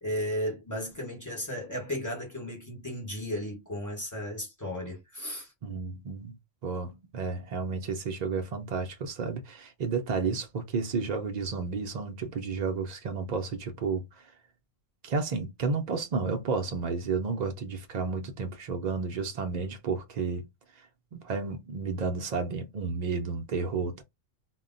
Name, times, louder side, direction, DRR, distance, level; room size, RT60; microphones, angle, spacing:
voice 1, 0.0-5.5, equal, 15° left, 0.9 m, -34 dB
voice 2, 5.6-6.4 6.6-14.1 15.0-20.5 21.1-24.0, right 4 dB, 85° right, 0.3 m, -32 dB
2.2 x 2.1 x 3.8 m
omnidirectional pair, 1.4 m